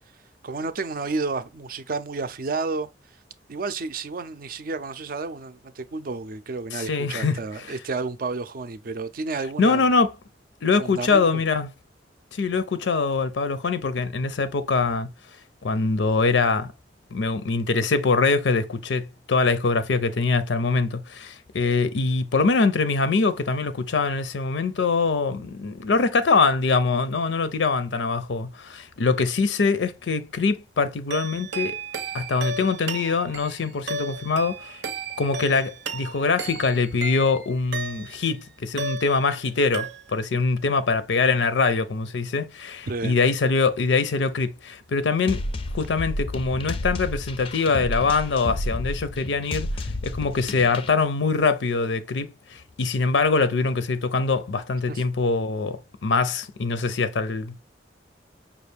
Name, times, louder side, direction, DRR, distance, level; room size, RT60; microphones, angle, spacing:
voice 1, 0.4-2.9 3.5-9.9 10.8-11.3 42.9-43.2 54.9-55.0, right 3 dB, 50° right, 0.4 m, -31 dB
voice 2, 6.7-7.4 9.6-10.1 10.6-11.7 12.3-15.1 15.6-16.7 17.1-31.8 32.1-34.8 35.2-45.4 45.7-57.6, left 4 dB, 90° left, 0.5 m, -23 dB
sound 1, 31.1-38.3 38.8-39.5 39.7-40.4, right 3 dB, 90° right, 0.7 m, -34 dB
sound 2, 45.3-50.9, left 1 dB, 30° left, 0.4 m, -31 dB
5.4 x 2.4 x 3.3 m
head